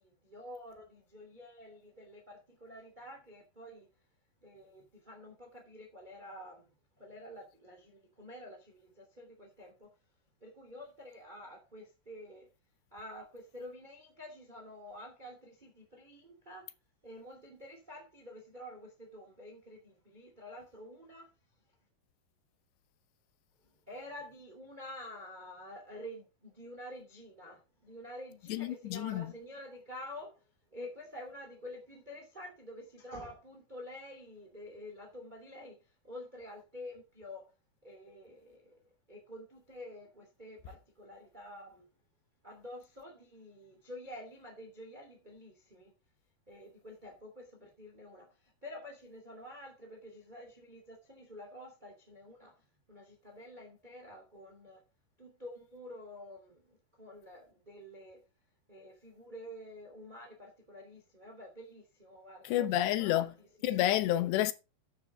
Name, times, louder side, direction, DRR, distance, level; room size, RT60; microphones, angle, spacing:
voice 1, 0.0-3.9 4.4-6.7 7.0-9.9 10.4-12.5 12.9-16.6 17.0-21.3 23.9-30.3 30.7-35.8 36.0-37.5 37.8-38.7 39.1-41.8 42.4-45.9 46.5-48.3 48.6-52.5 52.9-54.8 55.2-58.2 58.7-63.3 63.6-64.0, left 1 dB, 15° right, 2.2 m, -49 dB
voice 2, 28.5-29.3 62.4-63.3 63.6-64.5, left 13 dB, 90° left, 3.1 m, -29 dB
9.7 x 8.0 x 5.0 m
omnidirectional pair, 4.8 m